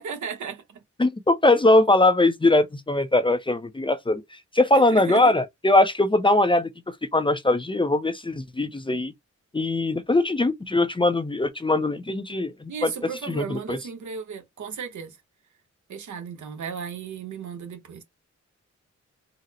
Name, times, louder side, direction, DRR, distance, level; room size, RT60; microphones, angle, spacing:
voice 1, 0.0-0.8 4.7-5.2 12.7-15.2 15.9-18.0, right 6 dB, 85° right, 1.0 m, -35 dB
voice 2, 1.0-9.1 9.5-12.9 13.3-13.8, left 2 dB, 20° left, 0.4 m, -21 dB
3.9 x 2.0 x 2.7 m
wide cardioid pair, 95°, 29 cm